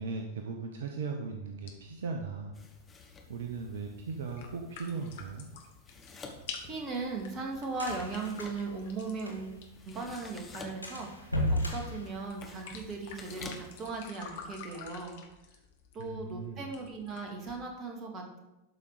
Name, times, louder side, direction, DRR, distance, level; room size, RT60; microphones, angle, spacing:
voice 1, 0.0-2.5 3.3-5.5 16.0-16.7, right 4 dB, 60° right, 3 dB, 0.9 m, -38 dB
sound 1, 1.5-17.6, left 6 dB, 55° left, 1.5 m, -50 dB
sound 2, 2.5-13.9, left 4 dB, 15° left, 1.4 m, -52 dB
sound 3, 6.3-9.7 10.0-10.1 10.4-10.5 10.8-12.9, left 1 dB, 90° right, 2.0 m, -35 dB
voice 2, 6.6-15.2 15.9-18.4, right 3 dB, 30° right, 1 dB, 2.2 m, -38 dB
12.0 x 5.2 x 4.9 m, 0.96 s
figure-of-eight pair, 90°, 0 cm